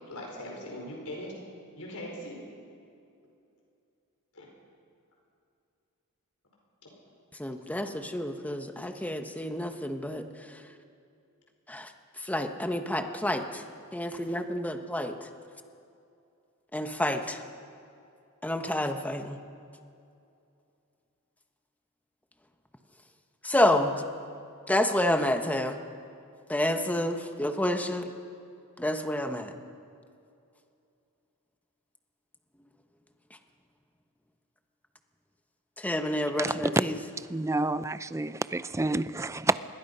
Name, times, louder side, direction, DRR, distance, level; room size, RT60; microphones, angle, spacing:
voice 1, 0.1-1.3 1.8-2.4 4.3-4.5 6.8-7.0 7.9-8.0, left 1 dB, 75° left, -1 dB, 5.0 m, -40 dB
voice 2, 7.4-10.2 10.5-10.6 11.7-11.9 12.2-13.6 13.9-15.2 16.7-17.4 18.4-19.4 23.4-24.0 24.7-25.8 26.5-28.0 28.8-29.5 35.8-36.9, left 1 dB, 5° left, 6 dB, 1.1 m, -29 dB
voice 3, 36.4-36.7 37.3-39.6, right 2 dB, 15° right, 14 dB, 0.5 m, -29 dB
26.0 x 21.5 x 5.6 m, 2.6 s
head